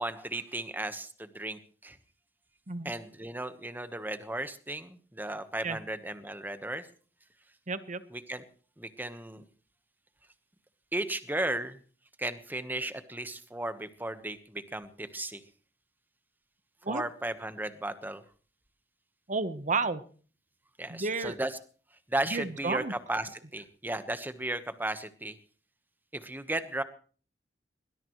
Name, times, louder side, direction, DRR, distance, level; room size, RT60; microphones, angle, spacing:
voice 1, 0.0-2.0 2.8-6.9 8.1-8.4 8.8-9.4 10.9-11.8 12.2-15.4 16.9-18.2 20.8-21.5 22.1-25.4 26.1-26.8, right 1 dB, 10° right, 10 dB, 1.2 m, -35 dB
voice 2, 7.7-8.0 16.8-17.0 19.3-20.0 20.9-21.4 22.3-22.9, right 3 dB, 45° right, 12 dB, 1.1 m, -31 dB
21.5 x 20.0 x 3.2 m, 0.42 s
head